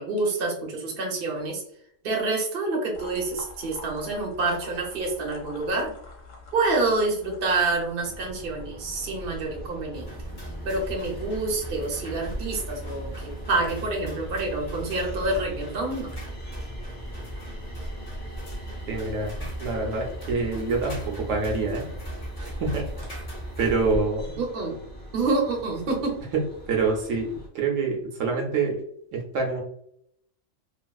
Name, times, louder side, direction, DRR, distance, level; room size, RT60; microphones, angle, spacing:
voice 1, 0.0-1.6 2.0-5.9 6.5-10.1 10.6-16.1 24.4-24.8 25.1-26.2, right 3 dB, 50° right, -1 dB, 0.9 m, -27 dB
sound 1, 2.9-7.9, left 3 dB, 80° left, 1.2 m, -45 dB
sound 2, 8.0-27.5, equal, 10° left, 0.6 m, -40 dB
sound 3, 9.9-23.9, right 1 dB, 40° left, 1.3 m, -38 dB
voice 2, 18.9-21.9 22.4-22.9 23.6-24.4 26.3-28.8 29.1-29.6, right 4 dB, 75° right, 1 dB, 1.0 m, -26 dB
3.4 x 2.3 x 2.3 m, 0.69 s
omnidirectional pair, 1.3 m